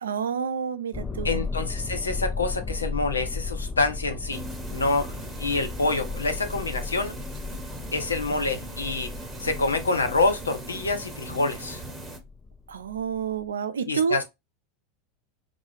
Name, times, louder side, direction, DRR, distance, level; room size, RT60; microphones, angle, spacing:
voice 1, 0.0-1.4 12.7-14.2, right 7 dB, 75° right, 0.3 m, -29 dB
sound 1, 0.9-13.4, left 4 dB, 20° left, 0.4 m, -35 dB
voice 2, 1.2-4.4 4.7-7.2 7.9-9.1 9.4-11.8 13.9-14.2, left 3 dB, 85° left, 0.5 m, -27 dB
sound 2, 4.3-12.2, right 1 dB, 15° right, 0.9 m, -39 dB
2.4 x 2.3 x 3.2 m
figure-of-eight pair, 85°, 0 cm